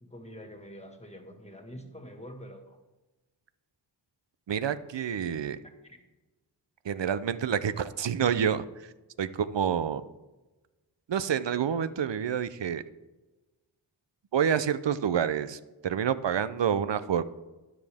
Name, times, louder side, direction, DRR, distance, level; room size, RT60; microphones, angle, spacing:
voice 1, 0.0-2.8 5.8-6.0, equal, 15° left, 4 dB, 1.7 m, -46 dB
voice 2, 4.5-5.6 6.8-8.9 9.2-10.0 11.1-12.8 14.3-17.2, right 8 dB, 70° right, 13 dB, 0.6 m, -28 dB
12.5 x 9.9 x 3.5 m, 1.1 s
wide cardioid pair, 70°, 45 cm